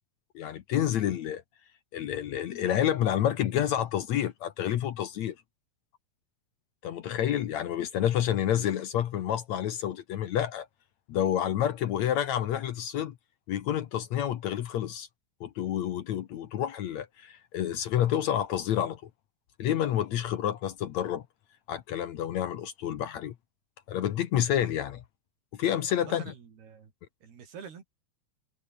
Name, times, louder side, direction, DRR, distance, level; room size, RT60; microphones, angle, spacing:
voice 1, 0.3-1.4 1.9-5.3 6.8-10.7 11.1-13.1 13.5-15.1 15.4-19.0 19.6-21.2 21.7-23.3 23.9-25.0 25.6-26.2, left 10 dB, 70° left, 1.8 m, -29 dB
voice 2, 25.9-26.9 27.2-27.8, right 6 dB, 75° right, 5.9 m, -46 dB
omnidirectional pair, 4.6 m